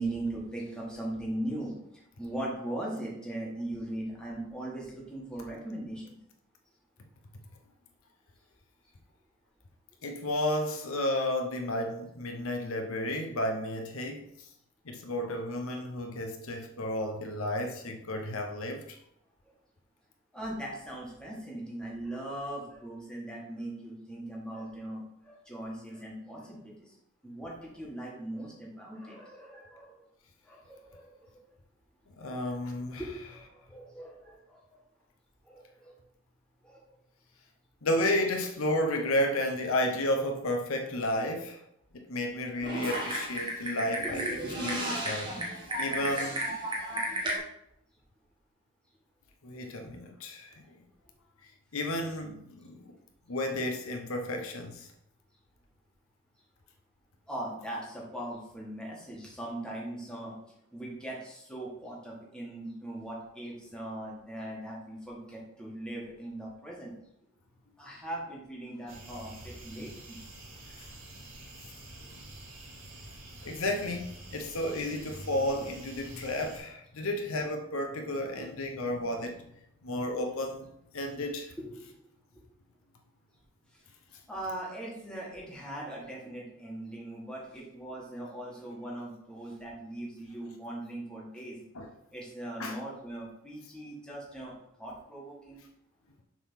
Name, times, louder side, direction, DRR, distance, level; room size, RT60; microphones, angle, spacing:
voice 1, 0.0-6.2 20.3-26.9 27.2-30.0 30.5-31.2 32.2-34.8 35.4-35.9 36.6-36.8 44.0-45.0 57.3-60.4 60.7-66.9 67.8-70.2 81.6-81.9 84.3-91.6 92.1-95.6, right 1 dB, 5° left, -4 dB, 1.8 m, -40 dB
voice 2, 10.0-14.3 14.9-19.0 32.2-33.0 37.8-41.6 41.9-44.2 44.6-45.3 45.8-46.4 49.4-50.5 51.7-52.9 53.3-54.9 70.8-70.9 73.4-79.5 79.8-80.7 80.9-81.5 91.7-91.9 92.6-92.8, left 1 dB, 65° left, 4 dB, 0.8 m, -32 dB
Typing, 42.6-47.4, right 1 dB, 20° right, 1.6 m, -33 dB
sound 1, 68.9-76.6, right 1 dB, 55° right, 3.2 m, -47 dB
7.1 x 3.9 x 5.7 m, 0.77 s
head